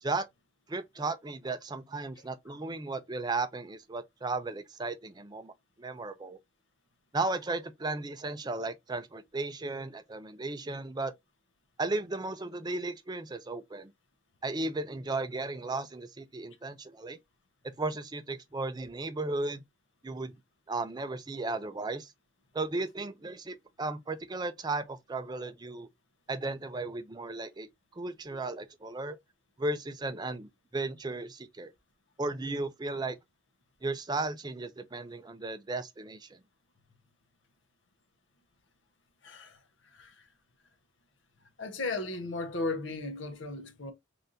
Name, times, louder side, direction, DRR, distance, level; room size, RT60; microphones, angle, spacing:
voice 1, 0.7-5.5 5.8-6.4 7.1-11.1 11.8-13.9 14.4-17.2 17.8-19.6 20.0-20.3 20.7-22.1 22.5-25.9 26.3-27.7 28.0-29.2 29.6-31.7 32.2-33.2 33.8-36.4, right 2 dB, 20° right, 0.4 m, -35 dB
voice 2, 39.2-40.3 41.6-43.9, left 3 dB, 60° left, 0.9 m, -36 dB
4.0 x 3.3 x 2.5 m
head